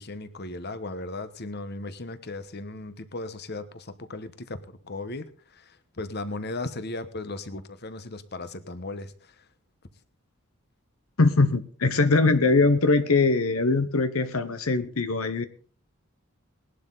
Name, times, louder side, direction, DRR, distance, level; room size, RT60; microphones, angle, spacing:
voice 1, 0.0-9.4, left 2 dB, 50° left, 12 dB, 1.2 m, -37 dB
voice 2, 11.2-15.5, left 3 dB, 85° left, 11 dB, 1.1 m, -22 dB
19.5 x 11.5 x 4.0 m, 0.42 s
head